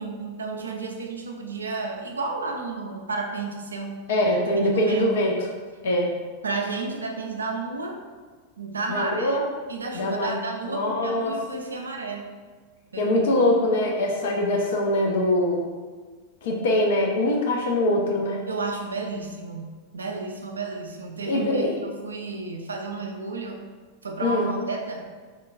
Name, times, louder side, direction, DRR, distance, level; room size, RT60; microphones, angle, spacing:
voice 1, 0.0-4.0 4.5-5.1 6.4-8.0 8.6-9.4 9.7-12.3 12.9-13.1 18.5-23.6 24.0-25.1, right 3 dB, 75° right, 2 dB, 0.3 m, -32 dB
voice 2, 4.1-5.3 5.8-6.1 8.9-9.4 9.9-10.4 10.7-11.4 13.0-15.6 16.4-18.4 21.3-21.7 24.2-24.5, left 1 dB, 60° left, 0 dB, 0.5 m, -23 dB
3.2 x 2.1 x 2.4 m, 1.4 s
figure-of-eight pair, 90°, 0 cm